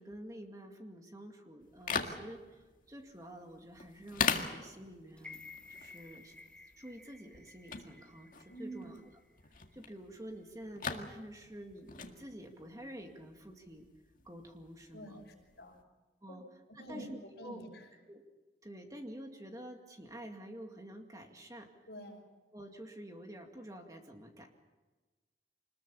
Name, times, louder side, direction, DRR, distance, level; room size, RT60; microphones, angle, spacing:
voice 1, 0.0-5.4 5.7-6.3 6.8-9.0 9.4-13.9 14.2-15.2 16.2-16.4 16.7-17.6 18.1-18.2 18.6-21.7 22.5-24.5, right 1 dB, 20° right, 3 dB, 2.2 m, -49 dB
sound 1, 1.6-15.8, left 5 dB, 50° left, 1.9 m, -42 dB
sound 2, 5.2-9.3 9.7-9.8, left 3 dB, 5° left, 1.0 m, -54 dB
voice 2, 8.5-8.9 14.9-15.8 16.3-16.4 16.7-17.0 17.4-17.9 21.9-22.2, right 1 dB, 75° left, 1 dB, 5.8 m, -47 dB
25.5 x 20.5 x 7.1 m, 1.2 s
head